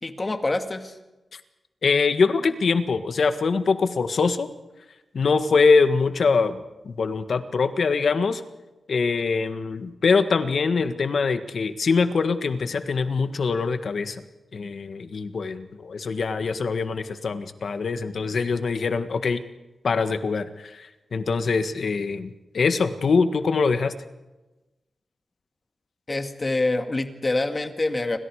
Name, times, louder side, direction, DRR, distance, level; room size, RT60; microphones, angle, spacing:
voice 1, 0.0-1.0 26.1-28.2, left 2 dB, 30° left, 6 dB, 2.3 m, -26 dB
voice 2, 1.8-4.5 5.1-6.6 6.8-8.4 8.9-14.2 14.5-19.4 19.8-22.3 22.5-24.0, left 4 dB, 65° left, 9 dB, 1.6 m, -23 dB
29.5 x 26.0 x 5.0 m, 1.1 s
wide cardioid pair, 120°, 0 cm